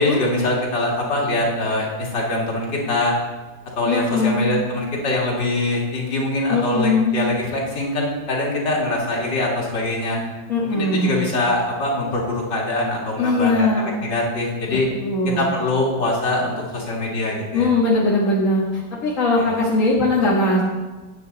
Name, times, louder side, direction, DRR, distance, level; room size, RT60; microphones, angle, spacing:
voice 1, 0.0-3.1 3.8-10.2 10.7-14.9 15.4-17.7 19.4-19.5, left 2 dB, 70° left, -3 dB, 3.0 m, -23 dB
voice 2, 3.9-4.6 6.5-7.3 10.5-11.2 13.2-13.9 14.7-14.8 15.0-15.5 17.5-18.6 19.0-20.6, left 2 dB, 45° left, -6 dB, 1.9 m, -20 dB
10.0 x 9.0 x 4.0 m, 1.3 s
omnidirectional pair, 2.0 m